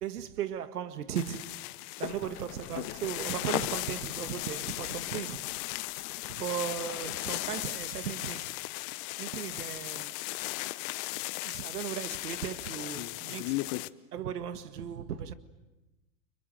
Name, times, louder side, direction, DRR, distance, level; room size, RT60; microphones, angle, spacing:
voice 1, 0.0-1.5 2.0-5.5 6.3-8.5 9.2-10.2 11.4-13.6 14.1-15.3, right 9 dB, 80° right, 1.8 m, -37 dB
sound 1, 1.2-13.9, left 21 dB, 45° left, 1.0 m, -36 dB
sound 2, 2.0-7.7, left 13 dB, 70° left, 1.6 m, -47 dB
29.5 x 25.0 x 7.7 m
hypercardioid pair, 110°, 45 cm